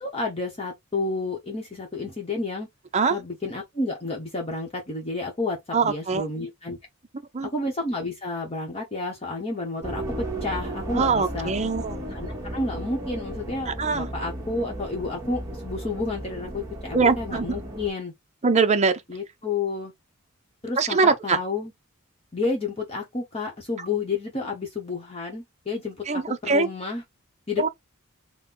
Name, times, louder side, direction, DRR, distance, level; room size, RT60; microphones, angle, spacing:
voice 1, 0.0-2.7 3.1-6.8 7.4-11.5 12.1-18.1 19.1-19.9 20.6-21.7 22.3-27.0 27.5-27.7, left 3 dB, 25° left, 1.0 m, -30 dB
voice 2, 5.7-6.3 7.3-7.5 10.9-12.0 13.7-14.1 16.9-17.6 18.4-19.0 20.8-21.4 26.1-26.7 27.6-27.7, right 4 dB, 30° right, 0.6 m, -22 dB
sound 1, 9.8-17.9, right 1 dB, 15° right, 1.3 m, -35 dB
4.2 x 2.2 x 3.7 m
head